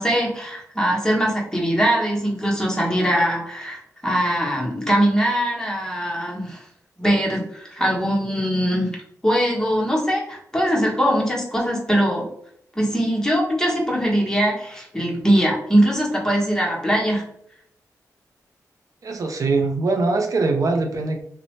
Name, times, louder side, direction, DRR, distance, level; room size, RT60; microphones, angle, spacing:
voice 1, 0.0-6.6 7.0-8.9 9.2-12.3 12.7-17.2, equal, 10° left, -3 dB, 0.9 m, -21 dB
voice 2, 19.0-21.2, right 3 dB, 60° right, 3 dB, 0.4 m, -22 dB
2.6 x 2.0 x 3.0 m, 0.70 s
cardioid pair, 75°, 6 cm